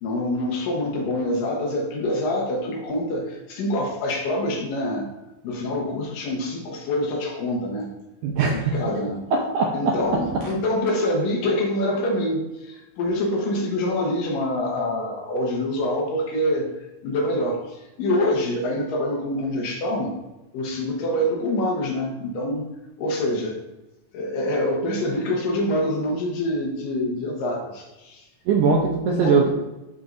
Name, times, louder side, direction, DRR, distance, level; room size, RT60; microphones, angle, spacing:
voice 1, 0.0-5.1 5.4-7.9 8.5-9.2 9.7-16.7 17.0-20.1 20.5-22.7 23.0-23.6 24.1-28.3 29.1-29.4, left 1 dB, 75° left, -1 dB, 2.6 m, -25 dB
voice 2, 8.2-8.8 9.3-10.0 28.5-29.5, right 4 dB, 75° right, 0 dB, 1.8 m, -20 dB
11.0 x 3.8 x 2.6 m, 0.99 s
omnidirectional pair, 4.1 m